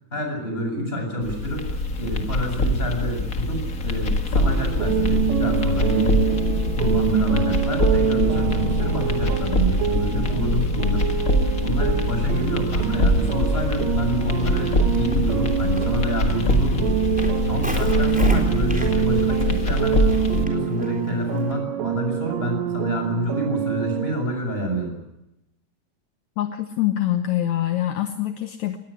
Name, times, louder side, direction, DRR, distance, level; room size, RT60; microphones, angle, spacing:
voice 1, 0.1-1.7 2.0-6.2 6.8-17.0 17.5-25.0, equal, 15° left, 4 dB, 7.2 m, -28 dB
sound 1, 1.2-20.4, left 1 dB, 35° left, 1.6 m, -23 dB
sound 2, 4.4-24.2, right 8 dB, 70° right, 2.2 m, -26 dB
Walk footsteps, 14.2-21.5, equal, 5° right, 3.7 m, -38 dB
voice 2, 26.4-28.8, left 13 dB, 70° left, 7 dB, 2.4 m, -24 dB
20.5 x 18.5 x 9.8 m, 0.89 s
omnidirectional pair, 3.5 m